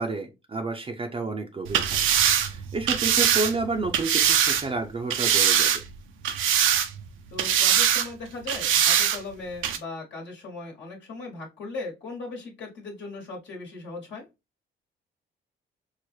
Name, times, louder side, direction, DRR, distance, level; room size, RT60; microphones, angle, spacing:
voice 1, 0.0-2.0 2.3-5.7, right 3 dB, 30° right, 3 dB, 0.5 m, -30 dB
sound 1, 1.6-4.6 5.1-6.0 6.2-7.1 7.4-8.1 8.5-9.2 9.6-9.8, right 9 dB, 85° right, 0.6 m, -22 dB
voice 2, 7.3-14.3, left 3 dB, 65° left, 0 dB, 1.2 m, -38 dB
4.6 x 2.0 x 3.0 m, 0.24 s
cardioid pair, 90°, 20 cm